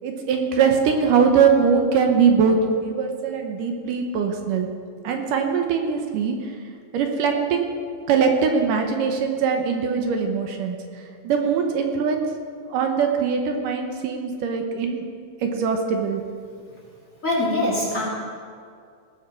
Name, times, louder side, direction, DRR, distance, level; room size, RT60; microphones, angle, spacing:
voice 1, 0.0-4.7 5.0-6.5 6.9-7.7 8.1-10.8 11.2-12.2 12.7-15.0 15.4-16.2, right 6 dB, 75° right, 4 dB, 2.6 m, -21 dB
voice 2, 17.2-18.0, left 1 dB, 25° left, -4 dB, 2.4 m, -22 dB
18.0 x 7.8 x 6.2 m, 2.2 s
omnidirectional pair, 3.9 m